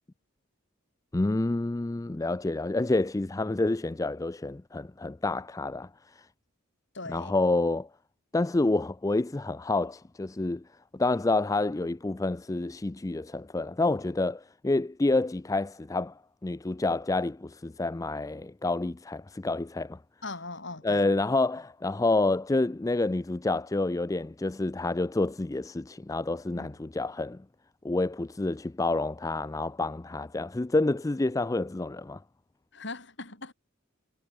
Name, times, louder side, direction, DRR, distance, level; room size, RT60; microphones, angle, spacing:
voice 1, 1.1-6.3 7.1-7.9 8.3-10.6 10.9-20.0 20.8-27.4 27.8-32.2, left 2 dB, 15° left, 0.4 m, -28 dB
voice 2, 6.9-7.3 20.2-21.1 26.5-26.8 32.7-33.5, left 3 dB, 55° left, 7.6 m, -40 dB
head